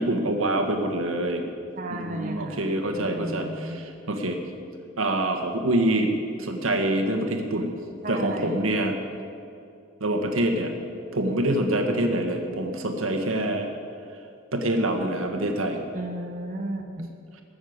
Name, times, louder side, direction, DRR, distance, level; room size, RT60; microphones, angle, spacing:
voice 1, 0.0-1.4 1.9-4.4 5.0-6.1 6.4-7.7 8.1-8.9 10.0-10.7 11.1-13.7 14.5-15.8, right 1 dB, 90° right, 4 dB, 1.8 m, -25 dB
voice 2, 1.7-3.8 8.0-8.6 15.9-17.1, right 1 dB, 40° right, 3 dB, 0.9 m, -34 dB
21.5 x 7.1 x 8.1 m, 2.5 s
head